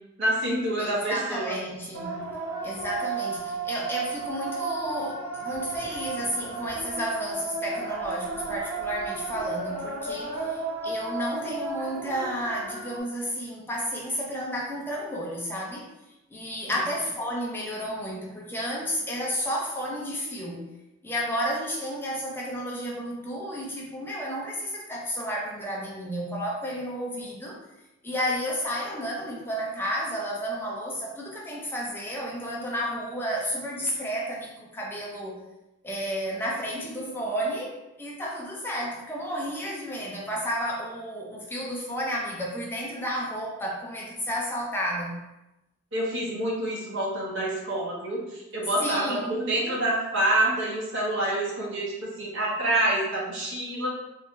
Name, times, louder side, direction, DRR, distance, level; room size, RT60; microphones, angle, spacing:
voice 1, 0.2-1.6 16.7-16.8 45.9-53.9, right 1 dB, 55° right, -5 dB, 1.0 m, -27 dB
voice 2, 0.8-2.1 2.6-15.8 16.3-20.7 21.0-27.6 28.0-35.4 35.8-45.2 48.8-49.4, equal, 10° left, -3 dB, 0.5 m, -32 dB
sound 1, 1.9-13.0, right 3 dB, 80° right, 0.9 m, -33 dB
3.1 x 2.7 x 3.6 m, 0.96 s
head